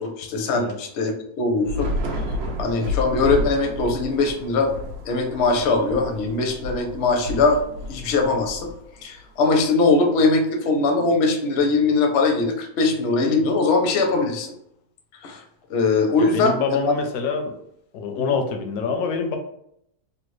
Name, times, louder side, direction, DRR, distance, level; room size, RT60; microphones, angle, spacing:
voice 1, 0.0-1.9 2.6-4.7 5.0-7.6 7.9-8.7 9.0-14.5 15.2-15.4 15.7-16.9, left 3 dB, 60° left, 4 dB, 0.7 m, -21 dB
Thunder / Rain, 1.6-9.2, left 1 dB, 75° right, 0.5 m, -31 dB
voice 2, 16.2-17.6 17.9-19.4, left 5 dB, 80° left, 4 dB, 1.2 m, -26 dB
3.3 x 2.2 x 3.1 m, 0.73 s
omnidirectional pair, 1.6 m